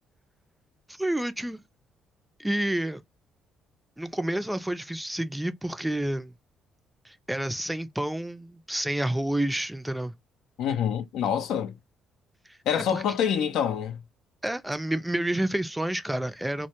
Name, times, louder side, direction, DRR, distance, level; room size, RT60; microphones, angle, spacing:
voice 1, 0.9-1.6 2.4-3.0 4.0-6.3 7.0-10.1 12.5-13.0 14.4-16.7, right 1 dB, 5° right, 0.4 m, -29 dB
voice 2, 10.6-11.7 12.7-14.0, left 8 dB, 80° left, 0.4 m, -26 dB
2.1 x 2.1 x 2.8 m
cardioid pair, 80°, 0 cm